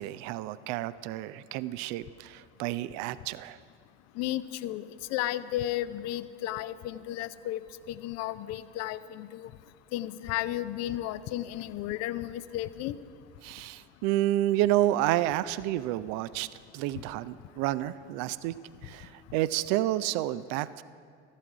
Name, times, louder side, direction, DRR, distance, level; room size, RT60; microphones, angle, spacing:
voice 1, 0.0-3.6 13.4-16.5 16.7-18.5 18.8-20.8, right 14 dB, 50° right, 16 dB, 0.4 m, -30 dB
voice 2, 4.2-4.8 5.1-7.6 7.9-9.5 9.9-13.0, left 14 dB, 45° left, 15 dB, 0.5 m, -33 dB
13.5 x 11.5 x 4.8 m, 2.2 s
figure-of-eight pair, 65°, 35 cm